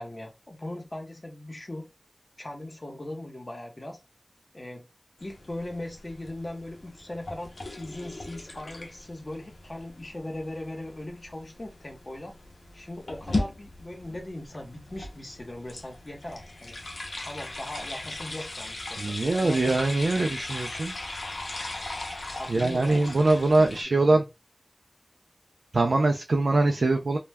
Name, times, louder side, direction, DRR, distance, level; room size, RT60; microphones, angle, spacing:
voice 1, 0.0-1.9 2.4-4.0 4.5-4.9 5.2-12.3 12.7-16.8 17.2-19.8 20.2-20.4 22.4-24.2, left 1 dB, 45° left, 0.8 m, -39 dB
sound 1, 5.2-23.8, left 2 dB, 75° left, 0.6 m, -38 dB
voice 2, 19.0-20.9 22.5-24.2 25.7-27.2, right 2 dB, 85° right, 0.3 m, -23 dB
2.2 x 2.1 x 3.3 m
wide cardioid pair, 65°, 0 cm